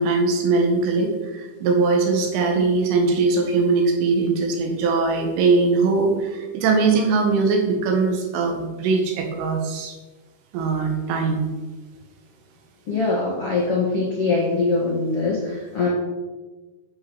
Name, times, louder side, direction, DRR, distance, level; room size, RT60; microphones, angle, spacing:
voice 1, 0.0-9.9 10.5-11.5, right 4 dB, 80° right, 3 dB, 4.2 m, -21 dB
voice 2, 12.9-15.9, left 3 dB, 65° left, -4 dB, 1.4 m, -22 dB
11.5 x 6.4 x 6.3 m, 1.2 s
omnidirectional pair, 5.7 m